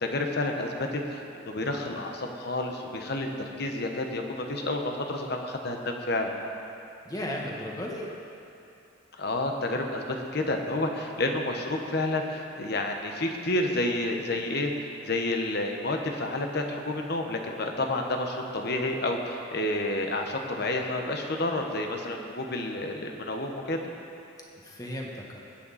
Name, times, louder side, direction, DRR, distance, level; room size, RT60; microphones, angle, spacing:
voice 1, 0.0-6.3 9.2-23.8, left 2 dB, 55° left, 3 dB, 1.2 m, -30 dB
voice 2, 7.0-8.1 24.6-25.4, left 1 dB, 20° left, -2 dB, 1.6 m, -35 dB
20.5 x 9.0 x 4.2 m, 2.7 s
head